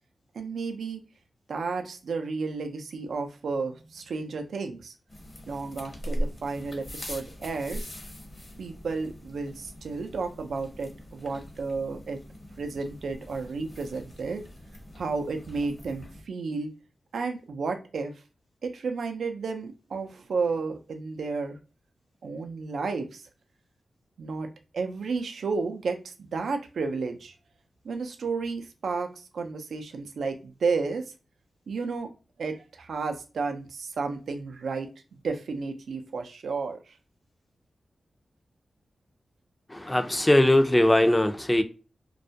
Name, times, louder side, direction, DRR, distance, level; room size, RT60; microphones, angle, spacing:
voice 1, 0.3-1.0 1.5-4.9 5.5-7.9 8.6-12.2 12.6-14.4 14.9-16.7 17.1-18.1 18.6-21.6 22.2-23.2 24.2-24.5 24.7-27.3 27.8-31.0 31.7-32.1 32.4-34.9 35.2-36.9, right 4 dB, 80° right, 0.4 m, -32 dB
sound 1, 5.1-16.2, equal, 45° left, 0.8 m, -40 dB
voice 2, 39.7-41.6, left 1 dB, 15° left, 0.4 m, -20 dB
2.2 x 2.1 x 2.7 m
cardioid pair, 45°, 0 cm